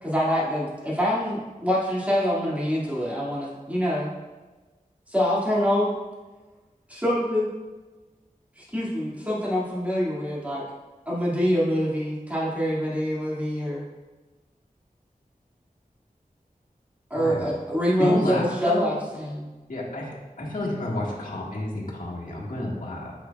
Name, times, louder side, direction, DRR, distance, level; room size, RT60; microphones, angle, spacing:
voice 1, 0.0-4.1 5.1-5.9 6.9-7.5 8.6-10.6 11.1-13.8 17.1-19.5, equal, 10° right, -6 dB, 2.3 m, -25 dB
voice 2, 17.1-17.5 18.0-18.8 19.7-23.1, left 1 dB, 65° left, -6 dB, 1.8 m, -30 dB
8.4 x 6.4 x 2.4 m, 1.2 s
wide cardioid pair, 60°, 15 cm